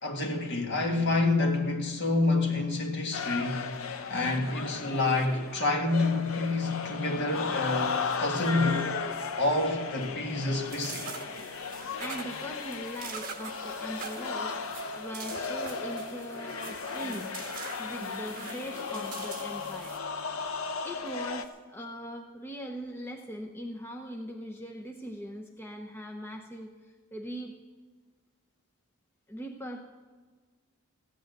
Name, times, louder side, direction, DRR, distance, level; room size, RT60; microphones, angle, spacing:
voice 1, 0.0-3.8 4.1-8.9 9.4-11.1, left 2 dB, 55° left, 1.8 m, -28 dB
sound 1, 3.1-21.4, left 5 dB, 75° left, 0.8 m, -36 dB
sound 2, 10.7-20.0, right 4 dB, 40° right, 1.7 m, -43 dB
voice 2, 12.0-14.6 15.0-17.3 17.8-20.0 20.8-27.5 29.3-29.9, equal, 10° left, 0.7 m, -40 dB
15.5 x 9.2 x 7.9 m
head